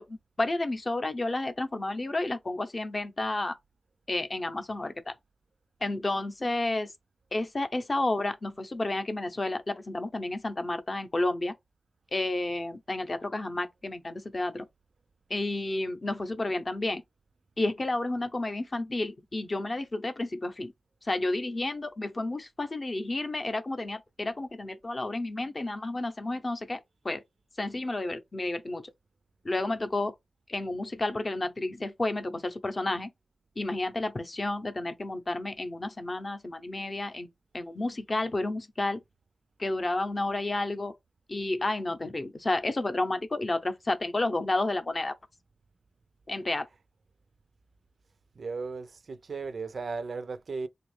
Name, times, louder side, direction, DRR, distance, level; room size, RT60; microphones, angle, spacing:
voice 1, 0.0-3.6 4.1-5.2 5.8-6.9 7.3-11.5 12.1-14.7 15.3-17.0 17.6-20.7 21.0-27.2 27.6-28.8 29.4-30.2 30.5-33.1 33.6-37.3 37.5-39.0 39.6-40.9 41.3-45.2 46.3-46.7, left 2 dB, 35° left, 0.6 m, -31 dB
voice 2, 48.4-50.7, right 4 dB, 60° right, 0.3 m, -36 dB
3.3 x 2.3 x 3.2 m
wide cardioid pair, 125°, 0 cm